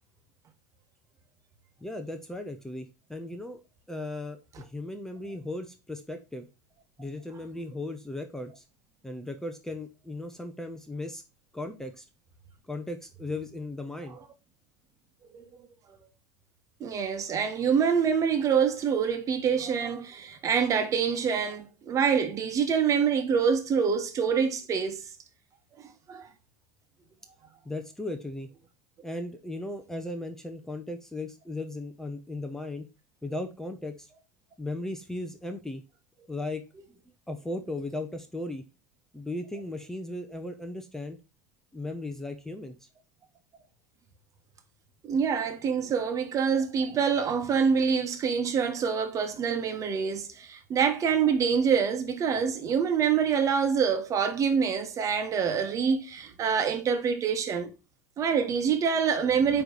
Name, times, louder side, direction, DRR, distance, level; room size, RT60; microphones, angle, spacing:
voice 1, 1.8-3.6 3.9-6.5 7.0-8.6 9.0-11.2 11.5-12.0 12.7-14.2 27.6-28.5 29.0-32.9 33.2-34.1 34.6-35.8 36.3-36.6 37.3-38.6 39.1-41.2 41.7-42.9, left 2 dB, 5° left, 1.0 m, -36 dB
voice 2, 16.8-25.0 26.1-26.3 45.1-57.7 58.2-59.6, right 6 dB, 35° right, 1.4 m, -26 dB
9.0 x 3.4 x 4.1 m
hypercardioid pair, 80°, 9 cm